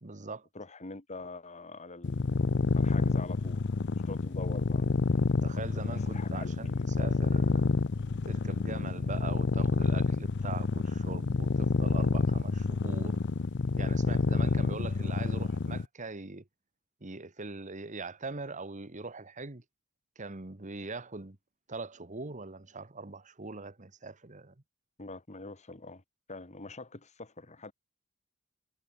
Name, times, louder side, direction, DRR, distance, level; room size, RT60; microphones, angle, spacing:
voice 1, 0.0-0.5 5.4-6.7 7.0-7.7 8.3-13.2 13.8-16.4 17.0-19.6 20.2-21.4 21.7-24.5, right 3 dB, 35° right, 1.4 m, -41 dB
voice 2, 0.5-2.4 2.8-3.6 4.1-4.9 5.9-6.8 25.0-26.0 26.3-27.7, left 3 dB, 35° left, 1.9 m, -44 dB
sound 1, 2.0-15.9, left 4 dB, 55° left, 0.6 m, -28 dB
head